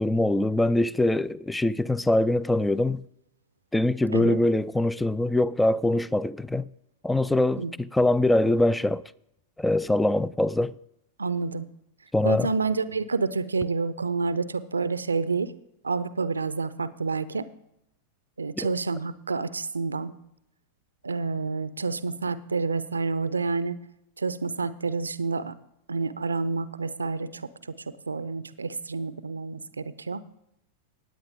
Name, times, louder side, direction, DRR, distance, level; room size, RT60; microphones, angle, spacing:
voice 1, 0.0-3.0 3.7-6.6 7.0-7.6 7.9-9.0 9.6-10.7 12.1-12.5 18.6-18.7, left 1 dB, 5° left, 0.3 m, -23 dB
voice 2, 11.2-11.6 12.2-15.5 15.8-17.5 18.4-20.1 21.0-23.8 24.2-25.5 25.9-27.5 28.1-30.2, right 4 dB, 75° right, 0.5 m, -28 dB
16.5 x 9.4 x 3.7 m
figure-of-eight pair, 90°, 0 cm